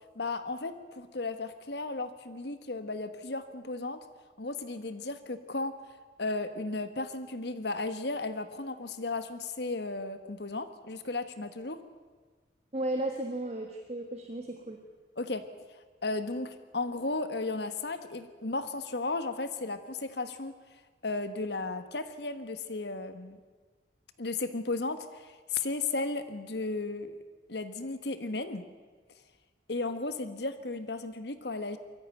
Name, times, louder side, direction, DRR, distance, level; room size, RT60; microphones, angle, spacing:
voice 1, 0.1-4.0 4.4-5.7 6.2-11.8 15.2-15.4 16.0-20.5 21.0-23.4 24.2-27.2 27.5-28.6 29.7-31.8, left 3 dB, 70° left, 10 dB, 1.4 m, -34 dB
voice 2, 12.7-14.8, right 1 dB, 35° right, 3 dB, 1.5 m, -34 dB
22.5 x 14.5 x 9.1 m, 1.4 s
head